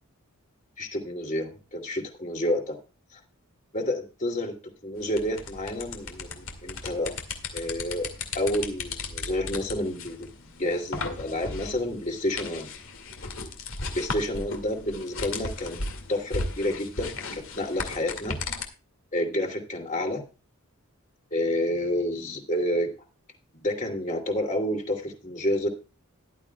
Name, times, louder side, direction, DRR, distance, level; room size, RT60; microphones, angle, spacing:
voice 1, 0.8-2.8 3.1-3.2 3.7-4.5 4.8-7.2 7.5-8.1 8.3-12.7 13.9-15.8 16.1-18.4 19.1-20.2 21.3-22.9 23.5-25.7, left 1 dB, 35° left, 2 dB, 2.8 m, -29 dB
sound 1, 5.0-18.6, left 3 dB, 65° left, 2.3 m, -36 dB
14.5 x 12.0 x 2.4 m, 0.32 s
head